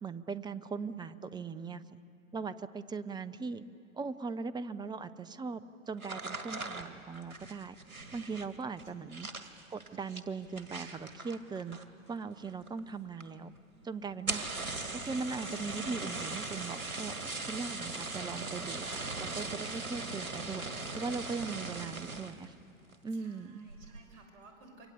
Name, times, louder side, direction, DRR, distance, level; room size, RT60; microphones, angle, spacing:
voice 1, 0.0-1.8 2.3-3.6 3.9-5.6 5.9-7.8 8.1-9.3 9.7-11.8 12.1-13.5 13.8-14.5 14.9-17.1 17.5-22.5 23.0-23.6, right 4 dB, 10° right, 15 dB, 0.7 m, -39 dB
sound 1, 6.0-12.1 12.4-12.9 13.2-13.3 13.6-13.7 14.1-22.5 22.9-23.3 23.7-24.1, right 3 dB, 90° right, 1.9 m, -40 dB
voice 2, 9.0-9.4 23.1-24.9, right 3 dB, 45° right, 2 dB, 6.5 m, -57 dB
28.0 x 23.5 x 8.2 m, 2.6 s
figure-of-eight pair, 100°, 41 cm